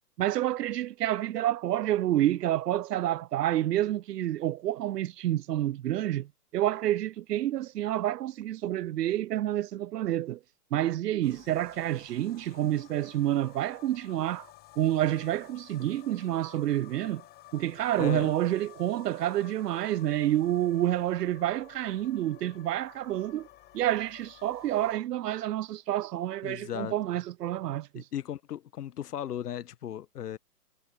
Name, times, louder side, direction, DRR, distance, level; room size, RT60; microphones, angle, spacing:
voice 1, 0.2-10.4 10.7-14.5 14.8-17.2 17.5-23.5 23.7-28.0, right 13 dB, 80° right, 0.6 m, -29 dB
sound 1, 11.2-25.0, left 14 dB, 20° left, 1.5 m, -54 dB
voice 2, 17.9-18.3 26.4-27.0 27.9-30.4, left 10 dB, 75° left, 1.1 m, -36 dB
hypercardioid pair, 135°, 47 cm